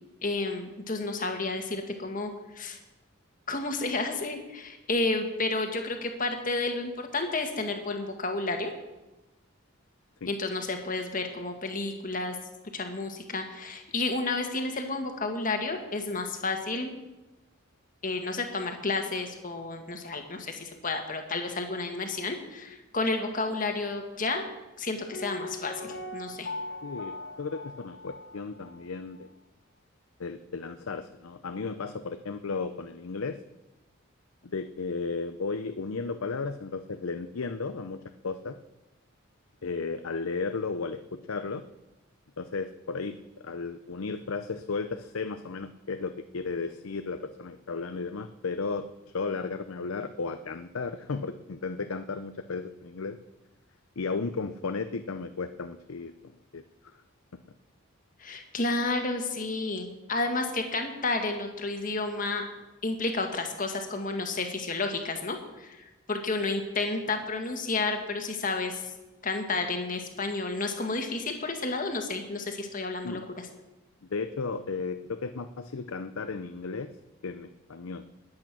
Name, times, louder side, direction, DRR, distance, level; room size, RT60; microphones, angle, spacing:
voice 1, 0.2-2.8 3.5-8.7 10.3-12.4 12.7-16.9 18.0-24.4 24.8-26.5 58.2-62.5 62.8-68.8 69.2-73.5, left 3 dB, 40° left, 5 dB, 1.8 m, -31 dB
Piano, 25.1-28.9 29.1-29.2, left 2 dB, 60° left, 1.3 m, -40 dB
voice 2, 26.8-29.3 30.2-33.4 34.4-38.0 38.2-38.5 39.6-41.0 41.3-41.6 42.4-48.9 49.1-53.2 54.0-56.6 56.9-57.0 73.0-73.3 74.1-76.9 77.2-78.0, left 4 dB, 85° left, 9 dB, 0.6 m, -34 dB
21.0 x 8.7 x 6.1 m, 1.1 s
head